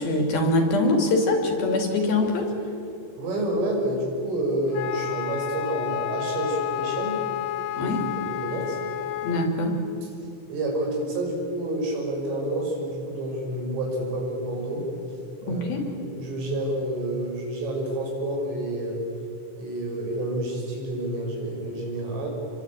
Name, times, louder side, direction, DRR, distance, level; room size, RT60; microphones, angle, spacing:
voice 1, 0.0-2.5 7.8-8.1 9.2-9.8 15.5-15.9, left 2 dB, 55° left, 3 dB, 4.4 m, -23 dB
voice 2, 3.2-7.2 7.7-8.0 8.3-8.8 10.5-14.9 15.4-15.7 16.0-19.0 19.6-22.3, right 1 dB, 80° right, 0 dB, 8.4 m, -29 dB
Wind instrument woodwind instrument, 4.7-9.5, left 10 dB, 70° left, 3.1 m, -30 dB
28.0 x 23.0 x 9.1 m, 2.6 s
omnidirectional pair, 5.6 m